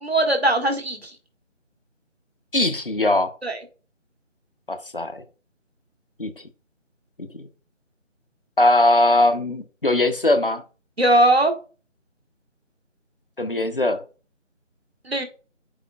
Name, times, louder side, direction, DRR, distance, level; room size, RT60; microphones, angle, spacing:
voice 1, 0.0-1.0 3.4-3.6 11.0-11.5 15.1-15.2, right 1 dB, 55° right, 1.7 m, -19 dB
voice 2, 2.5-3.3 4.7-5.2 6.2-6.4 7.2-7.5 8.6-10.6 13.4-14.0, left 2 dB, 45° left, 0.7 m, -20 dB
8.4 x 5.0 x 2.3 m
figure-of-eight pair, 165°, 38 cm